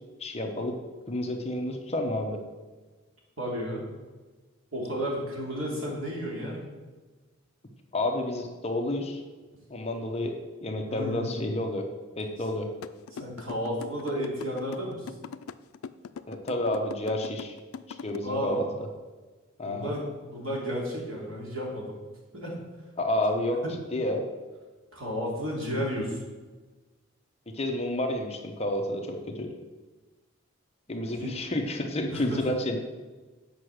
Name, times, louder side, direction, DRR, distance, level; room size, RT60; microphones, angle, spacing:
voice 1, 0.2-0.8 1.1-2.4 7.9-9.2 9.7-11.9 12.2-12.7 16.3-17.5 18.0-18.6 19.6-19.9 23.0-23.6 23.9-24.2 27.5-29.5 30.9-32.8, left 1 dB, 30° left, 3 dB, 0.9 m, -30 dB
voice 2, 3.4-3.9 4.7-6.7 10.9-11.4 13.1-15.1 18.2-18.7 19.6-21.9 22.3-22.6 23.6-23.7 24.9-26.2 31.0-31.4 32.1-32.4, equal, 75° right, -3 dB, 2.8 m, -32 dB
sound 1, 12.8-18.2, left 6 dB, 90° left, 0.4 m, -40 dB
8.3 x 5.8 x 6.3 m, 1.3 s
head